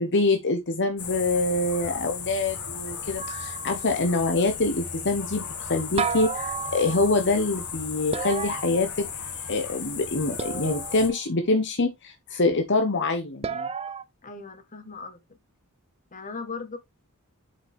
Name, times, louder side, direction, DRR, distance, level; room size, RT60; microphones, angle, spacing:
voice 1, 0.0-9.1 9.5-13.7, left 2 dB, 55° left, 1.1 m, -25 dB
sound 1, 1.0-11.1, left 7 dB, 85° left, 3.0 m, -36 dB
sound 2, 3.2-4.1 6.0-7.3 8.1-9.4 10.4-11.2 13.4-14.0, right 6 dB, 25° right, 0.5 m, -33 dB
voice 2, 14.2-15.2 16.1-16.8, left 4 dB, 35° left, 1.5 m, -38 dB
8.1 x 5.8 x 3.5 m
head